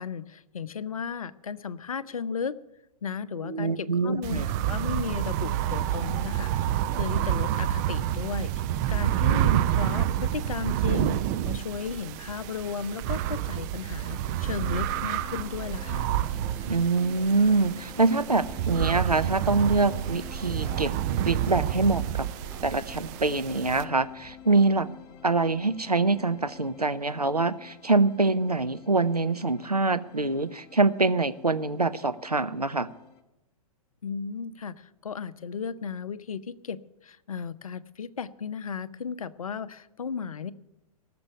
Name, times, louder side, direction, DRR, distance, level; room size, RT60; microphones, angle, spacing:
voice 1, 0.0-2.6 3.0-8.5 8.9-11.2 11.4-16.1 34.0-40.5, left 6 dB, 65° left, 15 dB, 0.7 m, -35 dB
voice 2, 3.4-4.5 16.7-20.9 21.2-22.3 22.6-24.9 25.2-32.9, right 3 dB, 90° right, 11 dB, 0.8 m, -25 dB
sound 1, 4.2-23.8, right 11 dB, 30° right, 0.5 m, -29 dB
sound 2, 14.6-33.2, left 7 dB, 25° left, 1.1 m, -48 dB
sound 3, 18.9-24.6, right 1 dB, 10° right, 4.5 m, -53 dB
18.0 x 6.9 x 8.1 m, 0.96 s
figure-of-eight pair, 110°, 19 cm